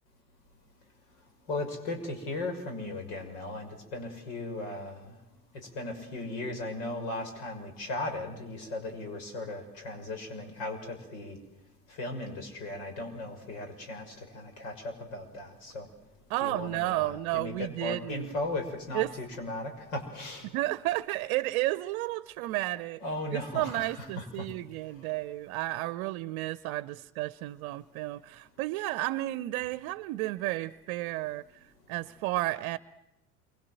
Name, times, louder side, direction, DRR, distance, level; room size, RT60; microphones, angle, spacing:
voice 1, 1.5-5.1 5.5-11.4 11.9-15.9 16.4-20.5 23.0-24.5, left 2 dB, 60° left, 6.4 m, -37 dB
voice 2, 16.3-18.4 18.9-19.1 20.5-23.0 23.3-32.8, right 18 dB, 50° right, 0.9 m, -32 dB
28.5 x 24.5 x 7.8 m
figure-of-eight pair, 70°, 44 cm